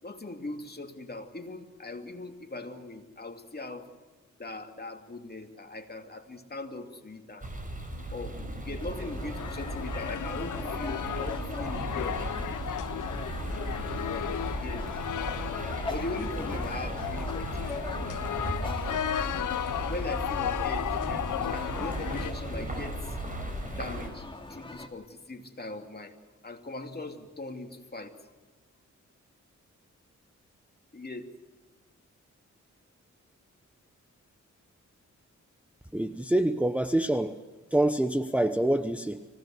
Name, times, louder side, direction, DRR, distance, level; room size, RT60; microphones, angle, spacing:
voice 1, 0.0-3.9 4.4-7.5 8.1-12.2 14.5-14.9 15.9-18.2 19.9-23.2 23.8-26.1 26.4-28.2 30.9-31.3, left 2 dB, 30° left, 4 dB, 2.7 m, -40 dB
sound 1, 7.4-24.1, right 1 dB, 25° right, 5.7 m, -36 dB
sound 2, 8.8-24.9, left 2 dB, 15° left, 2.5 m, -43 dB
sound 3, 9.3-22.3, left 10 dB, 90° left, 0.8 m, -34 dB
voice 2, 35.9-37.4 37.7-39.3, right 1 dB, 5° right, 8 dB, 0.8 m, -26 dB
25.0 x 17.0 x 7.9 m, 1.4 s
cardioid pair, 75°, 30 cm